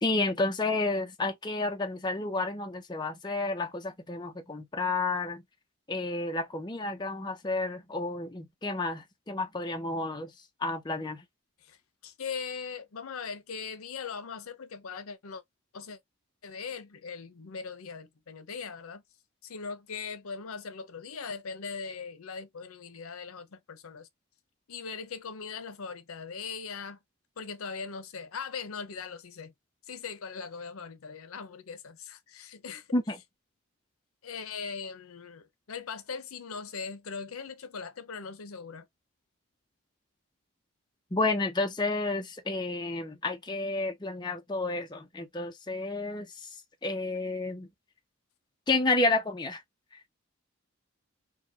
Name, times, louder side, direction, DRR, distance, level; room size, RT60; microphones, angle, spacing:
voice 1, 0.0-5.4 5.9-10.3 10.6-11.2 32.9-33.2 41.1-46.5 46.8-47.7 48.7-49.6, left 2 dB, 20° left, 0.5 m, -30 dB
voice 2, 11.6-15.4 15.7-16.0 16.4-19.0 19.4-24.1 24.7-27.0 27.4-29.5 29.9-32.9 34.2-38.9, left 5 dB, 80° left, 0.6 m, -40 dB
4.6 x 2.2 x 2.7 m
head